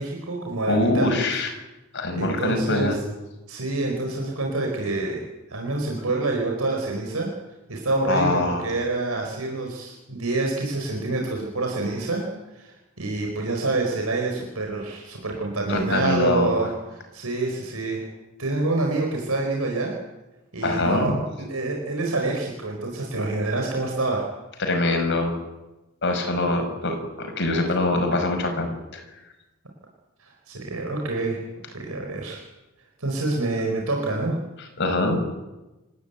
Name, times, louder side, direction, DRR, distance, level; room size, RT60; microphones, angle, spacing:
voice 1, 0.0-1.1 2.1-3.0 3.5-5.2 5.5-7.3 7.7-12.3 12.5-18.0 18.4-20.0 20.5-21.1 21.5-24.3 30.2-31.4 31.7-32.4 33.0-34.4, right 2 dB, 75° right, 1 dB, 4.7 m, -27 dB
voice 2, 0.7-1.5 1.9-3.0 8.1-8.7 15.7-16.5 20.6-21.2 24.6-25.3 26.0-29.0 34.8-35.2, left 2 dB, 55° left, 4 dB, 5.7 m, -23 dB
27.0 x 14.5 x 9.3 m, 1.1 s
head